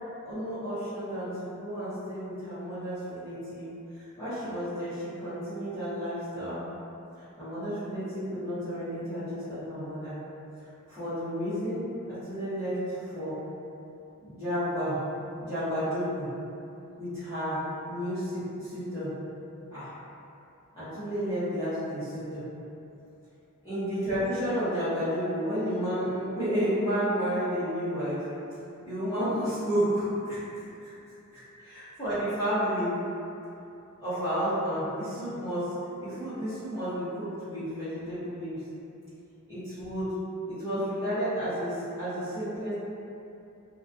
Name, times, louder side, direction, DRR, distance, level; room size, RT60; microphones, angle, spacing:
voice 1, 0.2-3.6 4.2-6.7 7.4-10.2 10.9-11.8 12.1-12.8 13.0-13.3 14.2-16.3 17.0-17.6 17.9-19.1 19.7-19.9 20.8-22.4 23.6-28.3 28.8-30.4 31.6-33.0 34.0-35.7 36.0-38.6 39.5-40.1 40.5-42.7, equal, 20° left, -17 dB, 0.6 m, -31 dB
2.3 x 2.2 x 2.5 m, 2.8 s
head